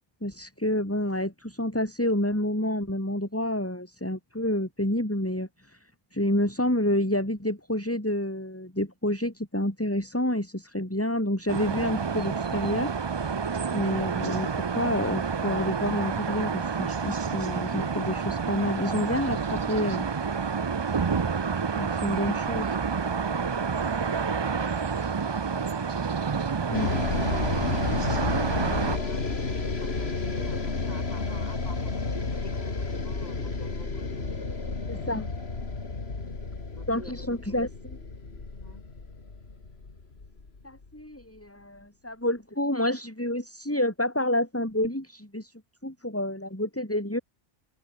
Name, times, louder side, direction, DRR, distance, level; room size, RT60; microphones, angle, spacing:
voice 1, 0.2-5.8 6.1-12.9 13.2-13.4 13.7-14.5 14.8-20.1 21.7-22.7 26.7-26.9 34.9-35.3 36.9-37.7 40.6-45.5 45.8-47.2, left 1 dB, 15° left, 3.8 m, -29 dB
sound 1, 11.5-29.0, right 5 dB, 35° right, 0.5 m, -29 dB
voice 2, 22.7-23.6 27.2-29.3 29.6-34.3 34.8-35.1 36.7-37.7 38.5-38.8, left 1 dB, 40° left, 7.2 m, -48 dB
sound 2, 26.7-41.0, left 3 dB, 85° left, 2.7 m, -31 dB
omnidirectional pair, 1.0 m